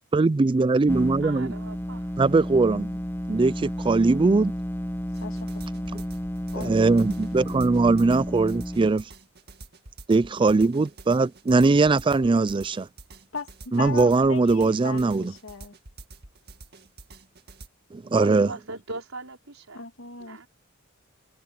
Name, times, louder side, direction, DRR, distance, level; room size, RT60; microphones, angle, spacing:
voice 1, 0.1-1.5 2.2-2.9 3.3-4.5 5.9-6.0 6.6-9.0 10.1-12.9 13.7-15.3 17.9-18.5, right 3 dB, 25° right, 0.4 m, -21 dB
sound 1, 0.9-8.9, equal, 10° left, 1.3 m, -32 dB
voice 2, 1.2-2.1 18.1-19.9 20.2-20.5, right 3 dB, 85° right, 5.3 m, -39 dB
sound 2, 5.1-17.7, right 3 dB, 55° right, 2.0 m, -47 dB
voice 3, 5.2-5.9 6.5-6.7 13.3-15.7 19.7-20.4, left 5 dB, 80° left, 2.2 m, -38 dB
head